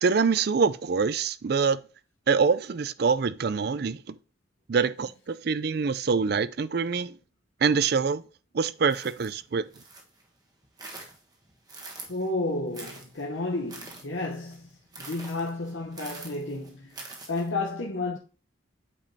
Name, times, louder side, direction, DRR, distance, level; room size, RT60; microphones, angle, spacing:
voice 1, 0.0-1.8 2.3-4.2 4.7-7.1 7.6-8.2 8.5-9.6, right 5 dB, 50° right, 0.4 m, -25 dB
sound 1, 8.9-10.2 10.6-12.3 12.7-17.5, right 3 dB, 20° right, 1.3 m, -45 dB
voice 2, 12.1-14.7 15.0-17.0 17.3-18.2, left 2 dB, 75° left, 1.0 m, -31 dB
8.6 x 5.2 x 2.8 m
head